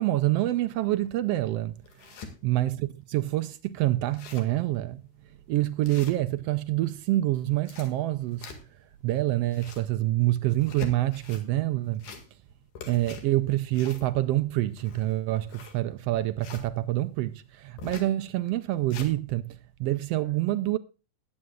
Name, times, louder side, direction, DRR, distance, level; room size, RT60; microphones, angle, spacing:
voice 1, 0.0-1.8 2.4-5.0 5.5-8.5 9.0-12.1 12.9-20.8, right 16 dB, 75° right, 1.5 m, -27 dB
sound 1, 1.0-1.1 1.6-2.3 2.9-3.0 3.3-3.4 3.7-3.8 4.0-4.6 5.0-5.2 5.8-6.6 7.4-8.9 9.3-9.9 10.5-11.4 11.9-12.5 12.8-16.7 17.8-18.1 18.6-19.1, left 5 dB, 85° left, 3.4 m, -43 dB
20.5 x 8.6 x 2.4 m
omnidirectional pair, 3.3 m